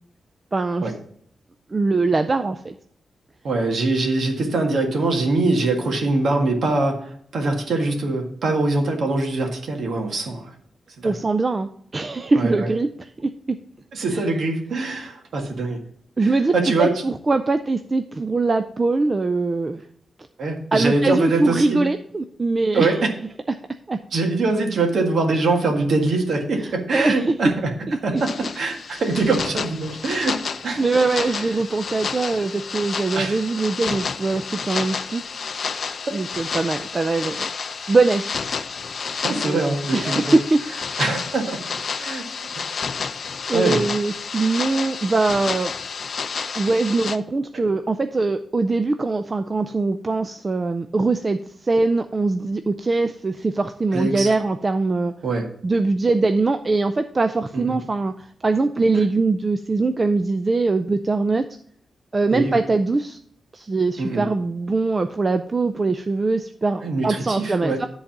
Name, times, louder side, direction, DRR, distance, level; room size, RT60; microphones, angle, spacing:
voice 1, 0.5-0.9 1.7-2.7 11.0-13.3 14.1-14.2 16.2-19.8 20.7-23.0 23.9-24.0 26.6-27.3 27.9-28.2 30.0-30.1 30.8-35.2 36.1-37.5 37.9-38.5 39.5-40.6 42.5-42.8 43.5-45.7 46.6-55.1 55.6-61.5 62.1-63.2 63.5-67.9, right 3 dB, 25° right, 8 dB, 0.4 m, -22 dB
voice 2, 3.4-10.5 11.0-11.1 12.4-12.7 13.9-15.8 16.2-16.9 20.4-21.8 22.7-23.1 24.1-27.7 28.0-28.3 28.6-30.4 30.6-30.8 31.4-31.5 33.1-33.4 39.2-40.4 41.0-41.6 42.0-42.3 43.5-43.8 53.9-54.3 55.2-55.5 57.5-57.8 58.9-59.0 62.3-62.5 64.0-64.3 66.8-67.8, right 3 dB, 65° right, 3 dB, 1.8 m, -23 dB
sound 1, 28.2-47.2, left 5 dB, 50° left, 0.5 m, -30 dB
10.5 x 4.0 x 7.2 m, 0.64 s
wide cardioid pair, 150°, 0 cm